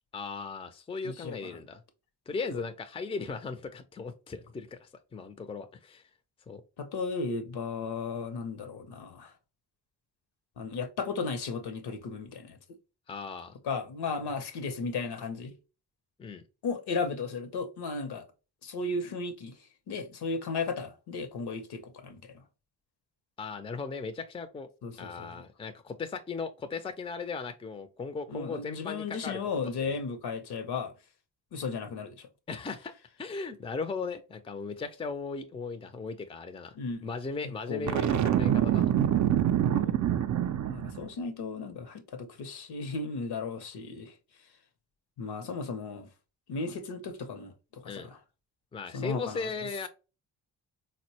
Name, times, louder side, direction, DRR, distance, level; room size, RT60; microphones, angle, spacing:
voice 1, 0.1-1.8 2.3-6.0 6.5-6.6 13.1-13.6 16.2-16.4 23.4-24.7 25.0-29.4 29.8-30.0 32.5-32.9 33.2-36.8 37.0-38.9 47.8-48.1 48.7-49.9, left 4 dB, 15° left, 0.4 m, -37 dB
voice 2, 1.0-1.5 2.5-2.6 6.8-9.3 10.6-12.6 13.6-15.5 16.6-18.3 18.6-19.5 19.9-22.2 24.8-25.4 28.3-30.9 31.5-32.3 36.7-37.1 37.4-38.0 39.8-40.0 40.7-44.1 45.2-46.1 46.5-48.2 48.9-49.5, left 4 dB, 65° left, 0.7 m, -35 dB
Boom, 37.9-41.1, right 10 dB, 45° right, 0.4 m, -25 dB
4.0 x 2.1 x 2.8 m
supercardioid pair, 50°, 42 cm